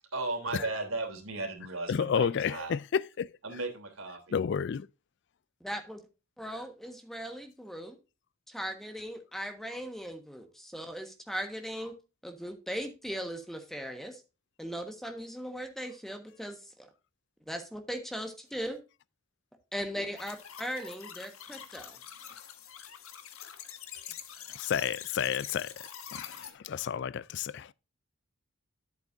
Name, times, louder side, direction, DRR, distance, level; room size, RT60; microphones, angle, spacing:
voice 1, 0.1-2.7 3.4-4.3, right 3 dB, 80° right, 3.1 m, -36 dB
voice 2, 1.9-3.3 4.3-4.9 22.3-22.4 24.5-25.7 26.1-27.7, left 7 dB, 55° left, 0.3 m, -31 dB
voice 3, 5.6-6.0 6.4-8.0 8.5-12.0 12.2-14.2 14.6-16.9 17.5-18.8 19.7-22.0, equal, ahead, 1.3 m, -38 dB
sound 1, 20.2-26.5, left 9 dB, 80° left, 1.3 m, -45 dB
10.5 x 8.2 x 2.6 m
head